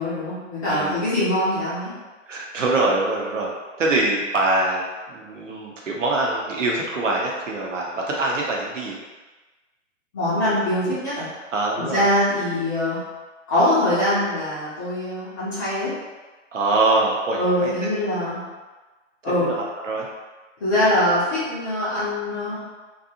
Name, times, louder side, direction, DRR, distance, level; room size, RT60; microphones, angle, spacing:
voice 1, 0.0-1.9 10.1-11.3 11.8-13.0 13.5-15.9 17.4-18.4 19.2-19.5 20.6-22.6, left 1 dB, 15° left, -11 dB, 0.4 m, -23 dB
voice 2, 0.7-1.0 2.3-3.5 3.8-4.8 5.1-9.0 11.5-12.1 16.5-17.9 19.4-20.1, right 2 dB, 75° right, -2 dB, 0.8 m, -24 dB
2.6 x 2.4 x 2.7 m, 1.2 s
figure-of-eight pair, 130°, 38 cm